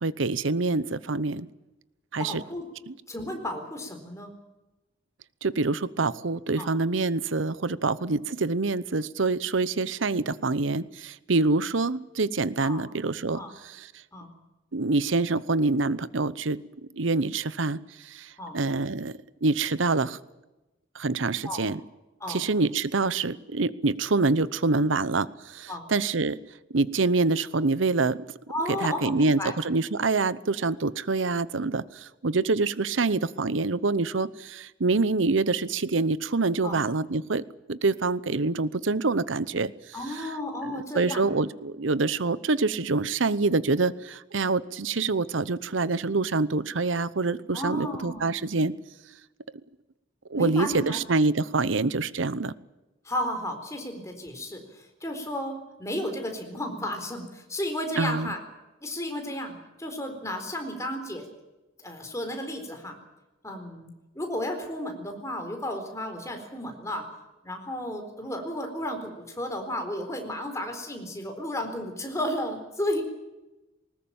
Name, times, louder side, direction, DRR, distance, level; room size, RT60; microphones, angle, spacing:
voice 1, 0.0-1.5 2.1-2.4 2.9-3.0 5.4-13.9 14.7-16.6 16.9-19.1 19.4-20.2 20.9-21.8 22.3-26.4 26.7-28.2 28.7-39.7 40.1-40.3 40.6-48.7 50.3-52.5 58.0-58.3, right 3 dB, 85° right, 18 dB, 0.9 m, -26 dB
voice 2, 2.2-2.6 3.1-4.3 6.6-6.7 12.6-12.8 13.4-13.5 14.1-14.3 18.4-18.6 21.4-21.6 22.2-22.4 25.7-25.8 28.5-29.5 36.6-36.8 39.9-41.3 47.5-48.3 50.3-51.0 53.0-58.4 58.8-61.3 61.8-62.9 63.4-67.1 67.4-73.0, left 1 dB, 15° left, 4 dB, 4.1 m, -33 dB
20.0 x 19.5 x 8.8 m, 1.0 s
head